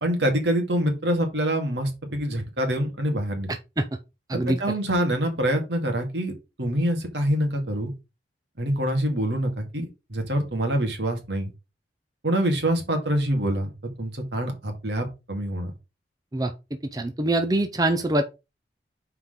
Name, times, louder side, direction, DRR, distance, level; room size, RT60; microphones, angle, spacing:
voice 1, 0.0-3.5 4.3-6.3 6.6-7.9 8.6-11.5 12.2-13.7 14.0-15.7, right 1 dB, 75° right, 2.2 m, -25 dB
voice 2, 16.9-18.2, right 1 dB, 20° right, 0.6 m, -23 dB
5.8 x 4.6 x 5.1 m
head